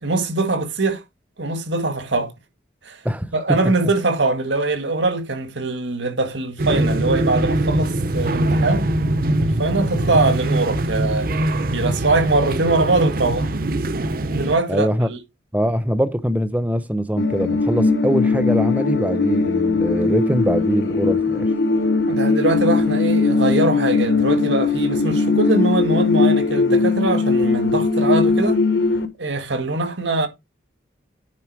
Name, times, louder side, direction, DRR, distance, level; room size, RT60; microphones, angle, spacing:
voice 1, 0.0-1.0 1.4-2.3 2.9-3.0 3.3-8.8 9.4-11.3 11.7-13.5 14.3-15.2 22.1-28.6 29.2-30.3, right 2 dB, 75° right, 1.8 m, -22 dB
voice 2, 3.0-3.7 14.7-15.1 15.5-21.5, equal, 10° right, 0.6 m, -22 dB
sound 1, 6.6-14.6, right 1 dB, 50° right, 0.7 m, -22 dB
sound 2, 17.2-29.1, left 3 dB, 65° left, 1.0 m, -19 dB
9.6 x 4.3 x 4.6 m
head